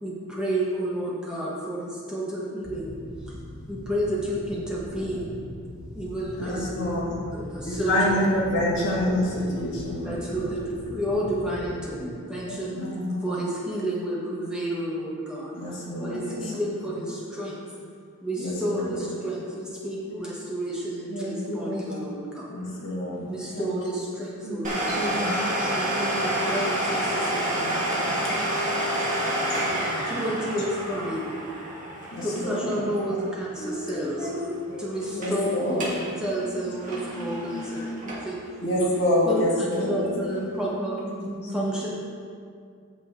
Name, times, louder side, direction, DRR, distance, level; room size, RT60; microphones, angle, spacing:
voice 1, 0.0-3.0 3.2-3.3 3.7-5.3 5.9-6.7 7.3-8.2 10.0-12.0 12.3-12.8 13.2-15.5 16.0-17.6 18.2-22.5 23.3-25.2 25.7-27.9 29.0-29.2 30.1-31.2 32.2-34.3 34.8-35.8 36.2-38.4 39.2-41.0 41.5-41.9, right 1 dB, 5° right, -6 dB, 1.2 m, -31 dB
sound 1, 2.6-11.7, left 1 dB, 20° left, 1.1 m, -41 dB
voice 2, 6.4-7.2 7.6-10.5 12.7-13.2 15.5-16.6 16.8-16.9 18.4-19.0 22.5-23.3 28.2-28.6 32.1-32.8 33.6-35.9 36.4-40.4, left 1 dB, 55° left, -6 dB, 2.2 m, -28 dB
voice 3, 11.8-12.1 12.4-13.1 21.1-22.1 23.3-23.8 24.4-25.7 32.7-32.9 35.1-35.6 36.0-36.2 41.0-41.7, equal, 80° left, -5 dB, 2.3 m, -35 dB
Domestic sounds home sounds, 24.6-34.1 34.3-34.4 35.0-35.4 35.7-36.1 36.4-38.5 38.9-39.0 39.7-39.8, right 1 dB, 35° right, 1.5 m, -29 dB
8.4 x 7.0 x 3.9 m, 2.3 s
head